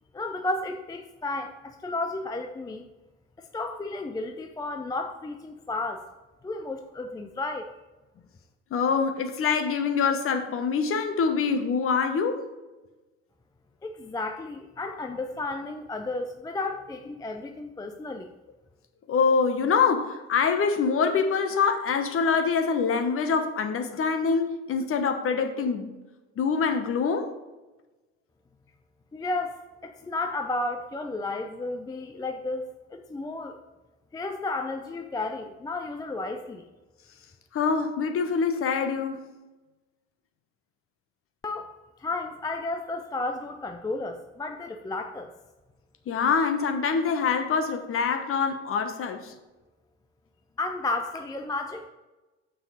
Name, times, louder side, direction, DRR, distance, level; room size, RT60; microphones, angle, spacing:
voice 1, 0.1-2.9 3.4-6.1 6.4-7.7 13.8-18.3 29.1-33.6 34.1-36.7 41.4-41.7 42.0-45.3 50.6-51.9, left 2 dB, 10° left, 0.5 m, -33 dB
voice 2, 8.7-12.4 19.1-25.9 26.4-27.3 37.5-39.3 46.1-49.3, left 5 dB, 35° left, 1.2 m, -25 dB
7.2 x 5.9 x 5.1 m
figure-of-eight pair, 60°, 37 cm